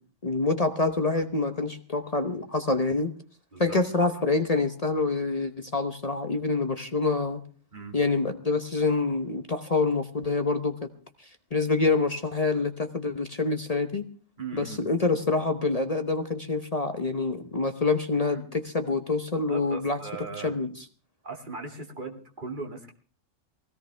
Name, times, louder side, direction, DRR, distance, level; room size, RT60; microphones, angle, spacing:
voice 1, 0.2-3.1 3.6-7.4 7.9-10.9 11.5-14.0 14.5-20.0 20.4-20.7, left 3 dB, 30° left, 7 dB, 1.0 m, -26 dB
voice 2, 14.4-14.8 18.3-18.5 19.3-20.6 21.2-22.9, right 3 dB, 40° right, 1 dB, 2.5 m, -38 dB
20.0 x 17.0 x 3.4 m, 0.40 s
omnidirectional pair, 1.3 m